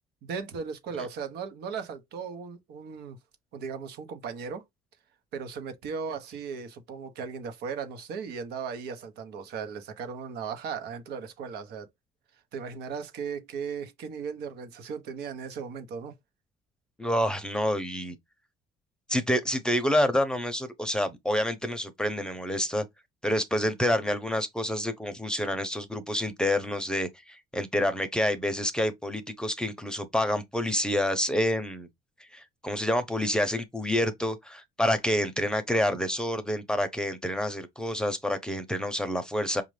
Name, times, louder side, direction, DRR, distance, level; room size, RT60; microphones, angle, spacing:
voice 1, 0.2-3.2 3.5-4.6 5.3-11.9 12.5-16.1, right 6 dB, 80° right, 1.0 m, -37 dB
voice 2, 17.0-18.2 19.1-22.9 23.2-31.9 32.3-39.6, left 1 dB, 5° left, 0.7 m, -28 dB
5.2 x 2.5 x 3.2 m
cardioid pair, 110°, 17 cm